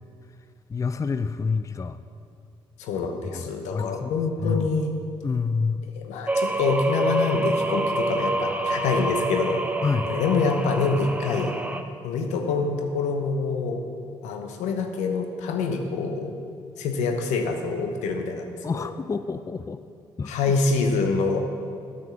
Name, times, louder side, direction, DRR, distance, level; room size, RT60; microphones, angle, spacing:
voice 1, 0.7-2.0 3.2-3.4 3.7-4.7 5.2-5.9 9.8-10.1 18.6-19.8 20.2-20.4, left 4 dB, 25° left, 11 dB, 0.4 m, -28 dB
voice 2, 2.8-4.9 6.0-9.6 10.1-11.5 12.0-13.8 14.2-16.3 16.8-18.9 20.3-21.4, left 4 dB, 80° left, 5 dB, 0.9 m, -26 dB
sound 1, 6.3-11.8, right 2 dB, 15° right, 0.7 m, -27 dB
9.1 x 5.3 x 6.8 m, 2.5 s
supercardioid pair, 50°, 12 cm